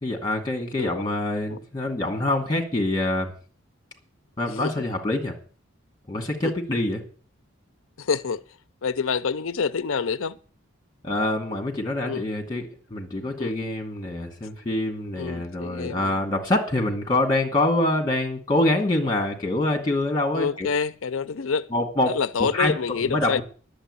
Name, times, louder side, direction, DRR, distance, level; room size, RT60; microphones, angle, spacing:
voice 1, 0.0-3.3 4.4-5.3 6.1-7.0 11.0-20.7 21.7-22.2 22.5-22.7 23.1-23.4, left 1 dB, 20° left, 2.3 m, -25 dB
voice 2, 0.7-1.0 1.5-1.6 4.5-4.8 6.4-6.5 8.0-8.4 8.8-10.4 12.0-12.2 13.4-13.5 15.2-16.2 20.3-21.7 22.1-23.4, left 5 dB, 85° left, 0.6 m, -27 dB
11.0 x 7.2 x 9.8 m
head